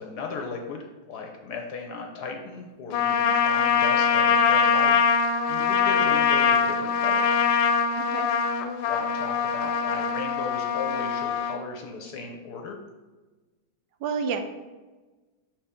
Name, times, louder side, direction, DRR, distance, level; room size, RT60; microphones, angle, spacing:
voice 1, 0.0-5.2 5.5-7.4 8.9-12.8, left 4 dB, 65° left, 3 dB, 1.1 m, -36 dB
Trumpet, 2.9-11.6, left 6 dB, 85° left, 1.4 m, -23 dB
voice 2, 8.0-8.3 14.0-14.4, right 6 dB, 75° right, 7 dB, 1.2 m, -29 dB
6.5 x 4.3 x 3.5 m, 1.2 s
omnidirectional pair, 2.1 m